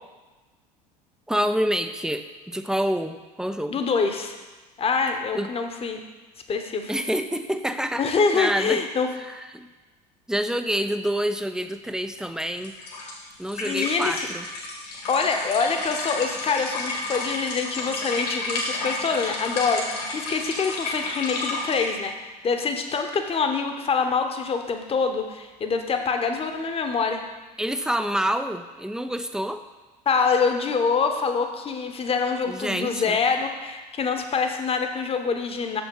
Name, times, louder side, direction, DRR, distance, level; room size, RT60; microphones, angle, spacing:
voice 1, 1.3-3.8 5.3-5.5 6.9-8.0 8.3-8.8 9.3-9.7 10.3-12.8 13.4-14.4 27.6-29.6 32.5-33.2, equal, 5° right, 9 dB, 0.5 m, -27 dB
voice 2, 3.7-4.4 4.8-6.0 6.5-6.9 8.0-9.1 13.6-14.3 15.1-22.1 22.4-27.2 30.1-35.8, left 5 dB, 30° left, 6 dB, 1.0 m, -25 dB
sound 1, 12.4-21.9, left 2 dB, 75° left, 2.2 m, -31 dB
6.9 x 5.8 x 5.4 m, 1.2 s
hypercardioid pair, 75°, 21 cm